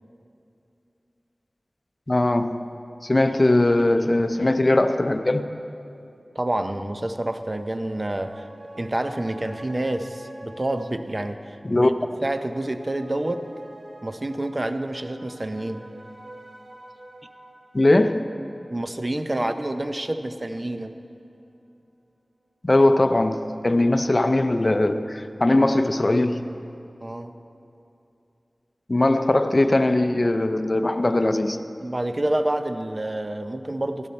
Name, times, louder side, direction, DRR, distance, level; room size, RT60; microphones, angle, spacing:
voice 1, 2.1-2.7 3.0-5.5 11.6-11.9 17.7-18.2 22.6-26.5 28.9-31.6, left 2 dB, 40° left, 9 dB, 0.6 m, -20 dB
voice 2, 6.3-8.4 8.8-11.9 12.2-13.4 14.0-15.9 18.7-21.0 27.0-27.3 31.8-34.1, right 1 dB, 35° right, 8 dB, 0.7 m, -28 dB
sound 1, 7.7-20.5 20.9-21.0, right 1 dB, 65° right, 1.3 m, -47 dB
16.0 x 12.0 x 4.2 m, 2.7 s
wide cardioid pair, 50°, 0 cm